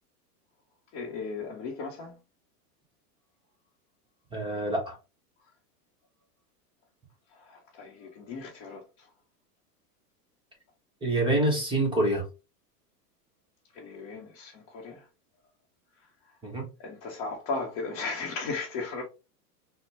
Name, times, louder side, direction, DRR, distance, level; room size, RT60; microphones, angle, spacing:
voice 1, 0.9-2.2 7.5-8.8 13.7-15.0 16.8-19.0, left 4 dB, 35° left, 0.9 m, -36 dB
voice 2, 4.3-5.0 11.0-12.2 16.4-16.7, right 1 dB, 10° right, 1.0 m, -26 dB
3.9 x 2.2 x 3.3 m
hypercardioid pair, 130°, 48 cm